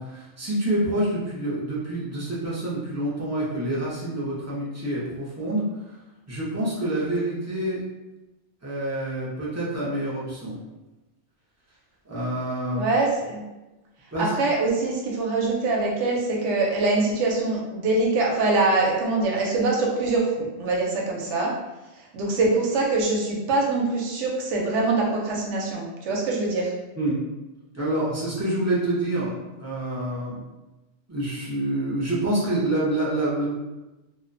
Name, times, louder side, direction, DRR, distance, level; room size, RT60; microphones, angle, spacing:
voice 1, 0.0-5.6 6.3-7.8 8.6-10.6 12.0-12.8 14.1-14.3 27.0-27.2 27.7-30.4 31.1-33.5, right 1 dB, 25° right, -7 dB, 0.4 m, -27 dB
voice 2, 12.8-13.4 14.2-21.5 22.0-26.7, right 3 dB, 90° right, -2 dB, 0.9 m, -24 dB
2.5 x 2.1 x 2.5 m, 1.0 s
omnidirectional pair, 1.2 m